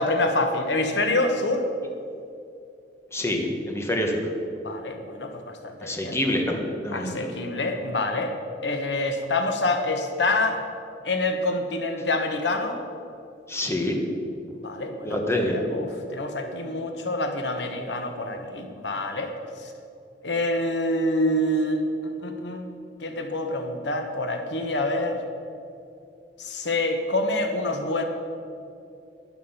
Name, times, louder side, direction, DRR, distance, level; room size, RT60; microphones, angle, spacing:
voice 1, 0.0-1.7 4.6-6.2 6.9-8.3 8.6-10.6 11.0-12.8 14.5-19.3 19.6-19.7 20.2-22.7 23.0-25.2 26.4-28.1, left 2 dB, 85° left, 5 dB, 1.3 m, -26 dB
voice 2, 3.1-4.2 5.8-7.3 13.5-14.0 15.0-15.6, left 1 dB, 15° left, 2 dB, 1.4 m, -26 dB
12.0 x 11.0 x 5.7 m, 2.6 s
head